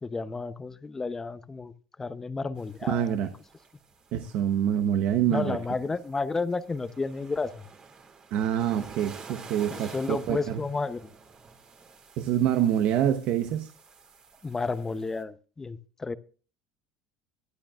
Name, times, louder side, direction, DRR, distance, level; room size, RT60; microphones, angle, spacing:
voice 1, 0.0-3.1 5.3-7.7 9.7-11.1 14.4-16.1, left 4 dB, 20° left, 0.7 m, -32 dB
sound 1, 2.6-15.2, right 4 dB, 35° right, 2.3 m, -50 dB
voice 2, 2.9-3.3 4.1-5.6 8.3-10.6 12.2-13.7, right 10 dB, 65° right, 1.0 m, -26 dB
22.5 x 11.5 x 2.4 m
supercardioid pair, 100°, 2 cm